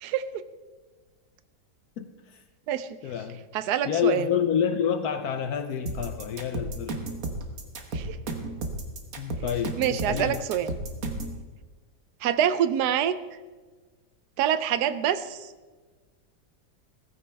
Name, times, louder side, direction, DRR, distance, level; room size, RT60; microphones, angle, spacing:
voice 1, 0.0-0.4 2.7-2.9 3.5-4.2 7.9-8.2 9.8-10.7 12.2-13.1 14.4-15.4, right 10 dB, 75° right, 13 dB, 1.2 m, -26 dB
voice 2, 2.0-2.4 3.0-3.4 3.8-7.1 9.2-10.4, left 8 dB, 70° left, 8 dB, 1.2 m, -28 dB
sound 1, 5.9-11.4, right 2 dB, 55° right, 1.7 m, -33 dB
16.5 x 15.0 x 3.4 m, 1.4 s
omnidirectional pair, 1.8 m